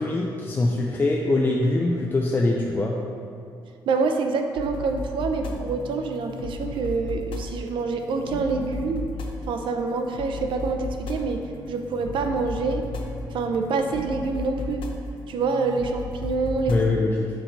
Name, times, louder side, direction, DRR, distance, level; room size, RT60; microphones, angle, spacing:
voice 1, 0.0-3.0 16.7-17.3, left 2 dB, 25° left, -2 dB, 0.4 m, -23 dB
voice 2, 3.9-9.1 9.5-11.4 11.7-12.8 13.3-14.8 15.3-16.7, right 4 dB, 75° right, 5 dB, 0.5 m, -26 dB
sound 1, 4.6-16.9, left 3 dB, 85° left, 0.6 m, -35 dB
6.2 x 4.5 x 4.0 m, 2.4 s
cardioid pair, 135°, 8 cm